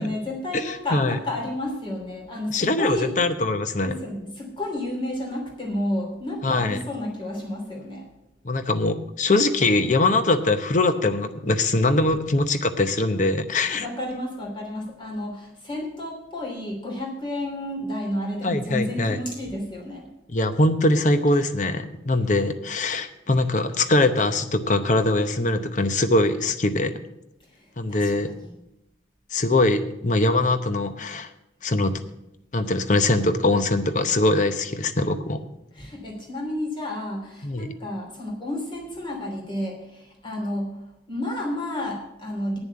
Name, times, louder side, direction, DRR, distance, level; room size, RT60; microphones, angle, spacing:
voice 1, 0.0-3.1 3.8-8.0 13.5-20.1 27.9-28.5 35.7-40.8 41.1-42.6, left 1 dB, 30° left, 0 dB, 3.0 m, -31 dB
voice 2, 0.5-1.2 2.5-3.9 6.4-6.8 8.4-13.9 18.4-19.2 20.3-26.9 27.8-28.3 29.3-31.3 31.6-32.0 32.5-35.4 37.4-37.7, left 2 dB, 45° left, 10 dB, 0.8 m, -22 dB
9.0 x 7.2 x 8.5 m, 0.88 s
head